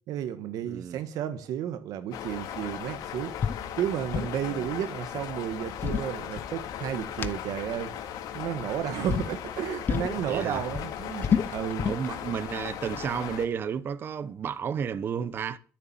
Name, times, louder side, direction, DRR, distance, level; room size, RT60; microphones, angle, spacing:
voice 1, 0.1-3.4 3.8-7.9 8.3-11.9, right 10 dB, 75° right, 1.4 m, -32 dB
voice 2, 0.6-1.0 4.5-4.7 10.3-10.6 11.8-15.6, right 7 dB, 35° right, 0.8 m, -32 dB
sound 1, 2.1-13.4, left 10 dB, 85° left, 2.5 m, -38 dB
sound 2, 3.4-3.6 3.9-4.4 5.5-6.8 7.2-7.3 8.4-8.7 9.1-9.3 9.9-10.2 10.5-12.1, left 7 dB, 35° left, 0.7 m, -29 dB
13.5 x 7.1 x 9.3 m
cardioid pair, 175°, 6 cm